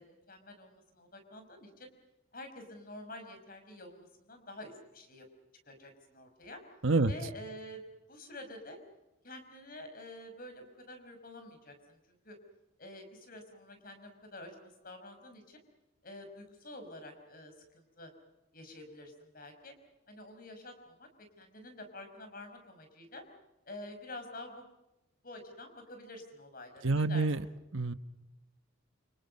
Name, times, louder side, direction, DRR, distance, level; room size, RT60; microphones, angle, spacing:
voice 1, 0.0-1.9 2.3-5.3 5.7-6.6 7.1-8.8 9.2-12.4 12.8-15.6 16.0-18.1 18.5-19.7 20.1-23.2 23.7-24.7 25.2-27.3, left 1 dB, 45° left, 7 dB, 5.3 m, -48 dB
voice 2, 26.8-27.4 27.7-27.9, right 3 dB, 75° right, 12 dB, 1.2 m, -27 dB
28.5 x 26.5 x 5.4 m, 0.94 s
head